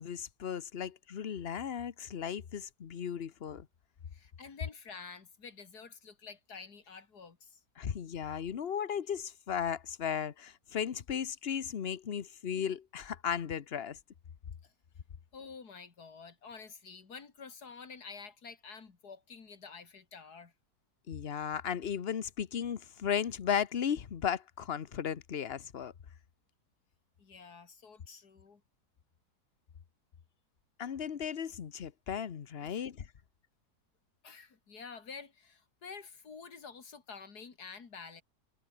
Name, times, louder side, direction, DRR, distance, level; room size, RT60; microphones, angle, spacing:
voice 1, 0.0-3.7 7.8-14.0 21.1-25.9 30.8-33.1, left 8 dB, 45° left, 1.1 m, -35 dB
voice 2, 4.1-7.6 14.6-14.7 15.3-20.5 27.2-28.6 32.6-32.9 34.2-38.2, left 5 dB, 90° left, 3.0 m, -49 dB
omnidirectional pair, 1.6 m